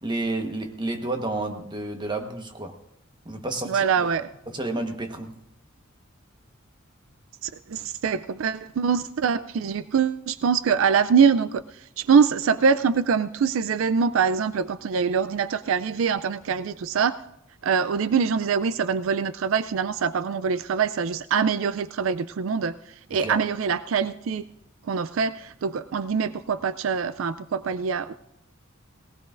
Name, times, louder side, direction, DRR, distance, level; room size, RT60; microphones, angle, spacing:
voice 1, 0.0-2.8 3.2-3.8 4.5-5.4 23.2-23.4, right 2 dB, 20° right, 5 dB, 1.2 m, -30 dB
voice 2, 3.7-4.3 7.4-11.6 12.0-17.2 17.6-22.8 23.1-24.4 24.9-28.1, right 6 dB, 75° right, 15 dB, 0.4 m, -24 dB
19.0 x 18.5 x 2.5 m, 0.81 s
head